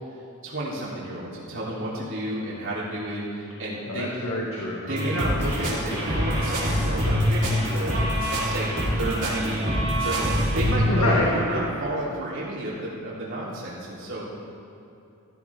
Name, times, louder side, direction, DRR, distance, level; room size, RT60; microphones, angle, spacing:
voice 1, 0.4-4.1 4.9-9.7 10.0-14.2, right 1 dB, 65° right, -7 dB, 3.3 m, -31 dB
voice 2, 3.9-4.8 10.9-11.3 11.5-11.6, left 1 dB, 80° left, -5 dB, 2.1 m, -26 dB
sound 1, 4.9-10.7, equal, 40° right, 3.8 m, -25 dB
sound 2, 5.4-10.4 11.1-11.7, left 1 dB, 30° left, 1.4 m, -40 dB
15.5 x 14.5 x 3.6 m, 2.8 s
head